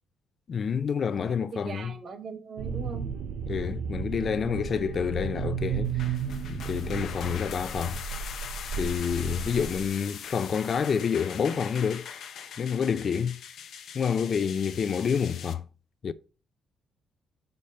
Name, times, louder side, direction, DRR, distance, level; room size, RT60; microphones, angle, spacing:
voice 1, 0.5-1.9 3.5-6.2 6.5-8.0 8.7-12.1 12.6-13.4 13.9-15.6 16.0-16.1, left 7 dB, 50° left, 0.5 m, -28 dB
voice 2, 1.2-3.1 6.8-7.1 8.8-9.0, right 4 dB, 50° right, 1.4 m, -41 dB
sound 1, 2.6-9.9, right 7 dB, 85° right, 0.7 m, -34 dB
sound 2, 5.8-15.5, left 8 dB, 70° left, 0.9 m, -41 dB
5.3 x 4.2 x 5.4 m
cardioid pair, 90°, 0 cm